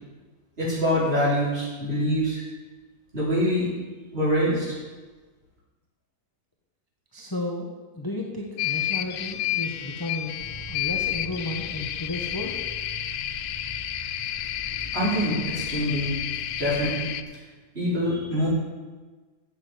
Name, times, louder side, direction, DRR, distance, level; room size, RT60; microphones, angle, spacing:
voice 1, 0.6-2.4 3.1-3.7 4.1-4.8 14.9-16.1 16.6-17.1 17.7-18.5, equal, 35° right, -9 dB, 5.0 m, -24 dB
voice 2, 7.1-7.7 7.9-12.6, left 1 dB, 15° left, -2 dB, 1.0 m, -33 dB
sound 1, 8.6-17.2, left 12 dB, 70° left, 1.0 m, -31 dB
sound 2, 10.4-16.9, right 1 dB, 50° left, 2.8 m, -43 dB
8.5 x 8.0 x 8.1 m, 1.3 s
omnidirectional pair, 1.8 m